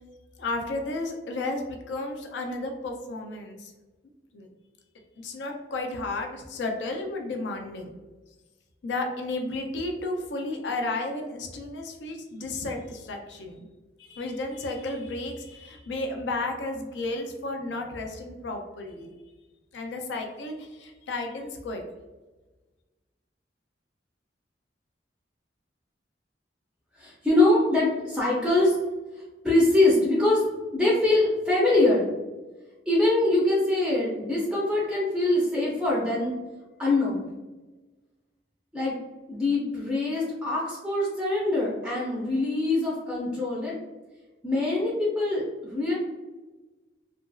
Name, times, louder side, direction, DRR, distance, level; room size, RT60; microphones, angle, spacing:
voice 1, 0.4-3.7 4.3-4.5 5.2-7.9 8.8-13.6 14.0-19.1 19.7-21.8, left 2 dB, 70° left, 3 dB, 0.4 m, -33 dB
voice 2, 26.9-28.8 29.1-30.4 30.7-32.1 32.9-36.4 36.8-37.3 38.7-39.0 39.3-43.8 44.4-45.9, left 2 dB, 5° right, -6 dB, 0.5 m, -23 dB
2.8 x 2.5 x 2.3 m, 1.2 s
head